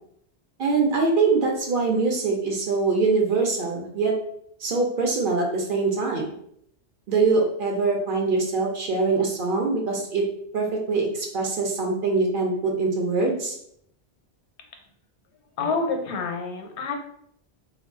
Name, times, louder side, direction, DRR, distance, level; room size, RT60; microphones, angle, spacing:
voice 1, 0.6-4.1 4.6-6.3 7.1-10.2 10.5-13.6, right 4 dB, 60° right, 0 dB, 0.6 m, -23 dB
voice 2, 15.6-16.9, left 4 dB, 80° left, 3 dB, 0.9 m, -27 dB
2.2 x 2.1 x 3.5 m, 0.70 s
omnidirectional pair, 1.1 m